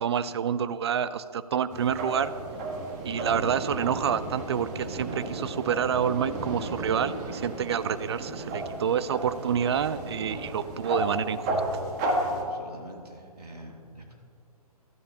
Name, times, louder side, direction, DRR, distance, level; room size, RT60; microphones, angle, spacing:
voice 1, 0.0-2.3 3.0-11.6, right 8 dB, 45° right, 15 dB, 0.4 m, -28 dB
sound 1, 1.7-12.4, right 1 dB, 30° right, 1.6 m, -33 dB
voice 2, 12.4-14.1, right 1 dB, 80° right, -1 dB, 2.4 m, -46 dB
17.5 x 12.5 x 2.9 m, 2.4 s
figure-of-eight pair, 130°, 20 cm